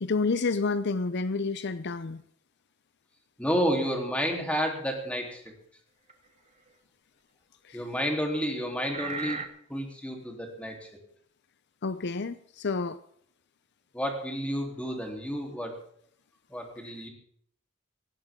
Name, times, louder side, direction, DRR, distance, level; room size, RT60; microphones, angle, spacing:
voice 1, 0.0-2.2 7.6-7.9 11.8-13.0 16.8-16.9, left 4 dB, 55° left, 13 dB, 0.6 m, -29 dB
voice 2, 3.4-5.4 7.7-9.4 9.7-10.9 13.9-15.7 16.5-17.1, equal, 5° left, 1 dB, 3.5 m, -30 dB
sound 1, 3.6-3.9 5.5-5.6 6.1-6.2 7.7-7.8 8.9-9.5, right 4 dB, 30° right, 1.5 m, -35 dB
18.0 x 16.5 x 3.7 m, 0.65 s
head